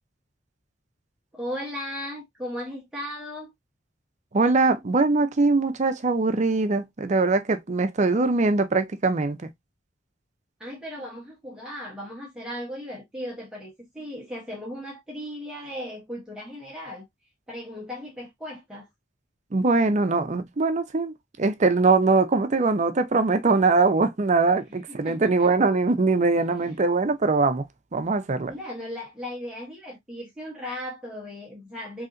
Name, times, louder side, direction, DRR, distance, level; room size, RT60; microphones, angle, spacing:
voice 1, 1.3-3.5 10.6-17.1 17.5-18.9 24.6-25.5 26.3-26.8 28.5-32.1, left 1 dB, 5° right, 0.8 m, -37 dB
voice 2, 4.3-9.5 19.5-27.6 27.9-28.5, right 3 dB, 35° right, 0.5 m, -22 dB
3.8 x 2.8 x 2.4 m
head